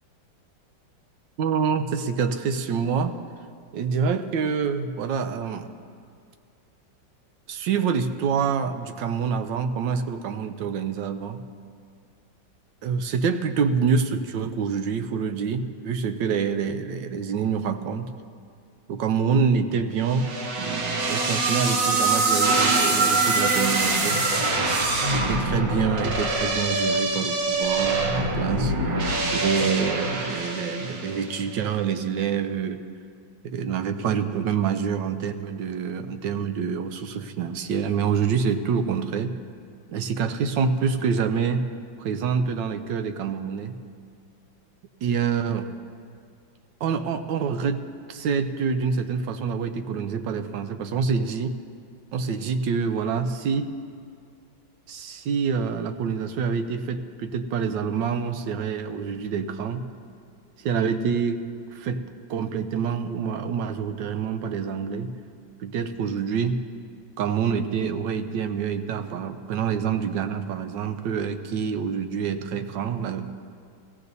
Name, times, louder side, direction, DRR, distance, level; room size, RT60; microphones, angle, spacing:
voice 1, 1.4-3.2 3.7-5.7 7.5-11.4 12.8-18.1 18.9-24.3 25.1-28.7 29.3-32.8 33.4-39.4 39.9-41.7 42.0-43.7 45.0-45.7 46.8-51.6 52.1-53.7 54.9-59.9 60.6-61.4 61.7-62.0 62.3-65.1 65.6-66.6 67.2-73.3, right 6 dB, 80° right, 9 dB, 1.3 m, -26 dB
sound 1, 20.1-31.4, right 2 dB, 55° right, 1.6 m, -24 dB
16.5 x 16.0 x 2.7 m, 2.2 s
omnidirectional pair, 2.0 m